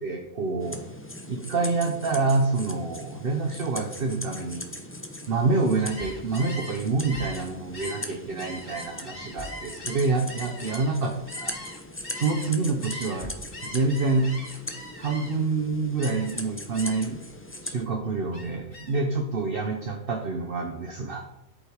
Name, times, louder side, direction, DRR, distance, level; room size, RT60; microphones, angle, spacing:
voice 1, 0.0-0.8 1.3-4.6 5.3-11.1 11.4-11.6 12.1-13.3 13.6-14.3 15.0-17.2 17.6-21.2, right 3 dB, 50° right, 4 dB, 1.1 m, -27 dB
sound 1, 0.6-17.8, left 1 dB, 10° left, 0.9 m, -40 dB
Gull seagull, 5.7-12.5 12.8-15.5 16.0-16.4 16.7-17.2 17.6-19.1, left 1 dB, 45° left, 2.5 m, -41 dB
10.0 x 8.6 x 4.8 m, 0.89 s
omnidirectional pair, 1.3 m